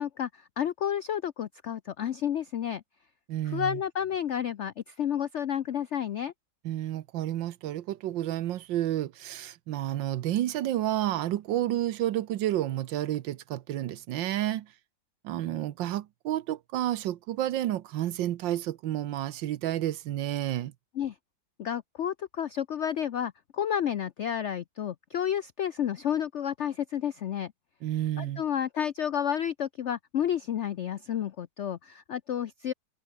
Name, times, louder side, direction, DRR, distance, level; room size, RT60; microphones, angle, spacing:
voice 1, 0.0-2.8 3.5-6.3 20.9-21.1 21.6-27.5 28.2-32.7, left 9 dB, 75° left, 0.6 m, -31 dB
voice 2, 3.3-3.8 6.6-14.7 15.2-20.7 27.8-28.4, right 13 dB, 85° right, 1.6 m, -30 dB
omnidirectional pair, 2.0 m